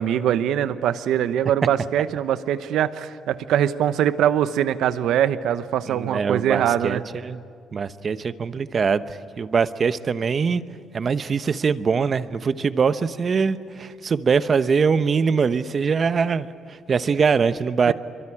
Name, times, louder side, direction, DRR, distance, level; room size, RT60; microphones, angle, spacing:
voice 1, 0.0-7.0 17.9-18.0, right 10 dB, 80° right, 13 dB, 0.9 m, -22 dB
voice 2, 5.9-7.4 7.7-10.6 10.9-17.9, right 5 dB, 45° right, 13 dB, 0.9 m, -22 dB
24.5 x 23.5 x 10.0 m, 2.3 s
cardioid pair, 90°, 0 cm